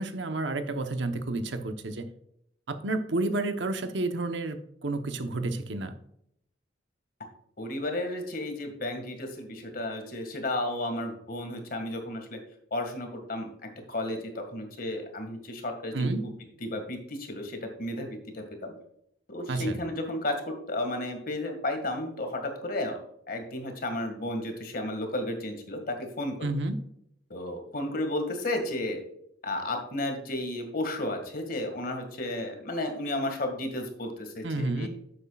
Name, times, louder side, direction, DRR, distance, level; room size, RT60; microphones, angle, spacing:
voice 1, 0.0-2.1 2.7-5.9 15.9-16.3 19.5-19.8 26.4-26.8 34.4-34.9, right 2 dB, 75° right, 8 dB, 1.0 m, -30 dB
voice 2, 7.6-12.4 12.7-16.3 16.6-18.7 19.3-23.0 23.3-26.6 27.3-29.0 29.4-34.9, left 1 dB, 50° left, 5 dB, 2.0 m, -33 dB
11.0 x 8.2 x 2.4 m, 0.71 s
head